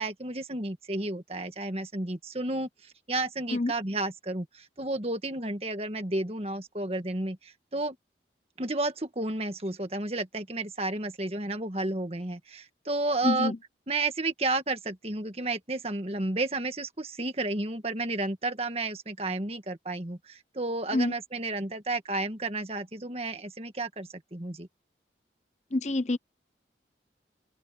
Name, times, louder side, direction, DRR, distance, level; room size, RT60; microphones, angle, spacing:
voice 1, 0.0-8.0 8.6-13.5 13.9-24.7, right 2 dB, 35° right, 1.8 m, -32 dB
voice 2, 13.2-13.6 20.9-21.1 25.7-26.2, left 2 dB, 40° left, 0.8 m, -26 dB
head